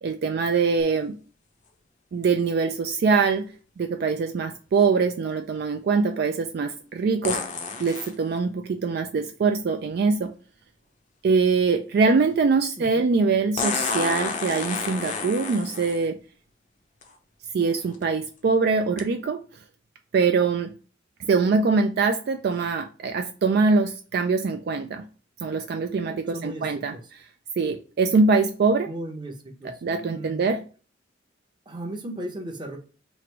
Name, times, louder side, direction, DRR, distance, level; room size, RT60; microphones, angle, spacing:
voice 1, 0.0-1.2 2.1-3.5 3.8-7.4 7.8-10.3 11.2-16.2 17.5-19.4 20.1-20.7 21.2-25.0 25.4-27.0 27.6-28.9 29.8-30.6, right 4 dB, 55° right, 0.3 m, -23 dB
sound 1, 0.8-0.9 7.2-8.1 10.2-10.3 13.6-16.1 17.0-17.1 17.8-18.0 19.0-19.1, left 4 dB, 40° left, 0.6 m, -29 dB
voice 2, 12.8-13.1 26.3-27.0 28.9-30.4 31.7-32.8, right 1 dB, 25° right, 0.7 m, -36 dB
3.1 x 2.5 x 4.4 m
head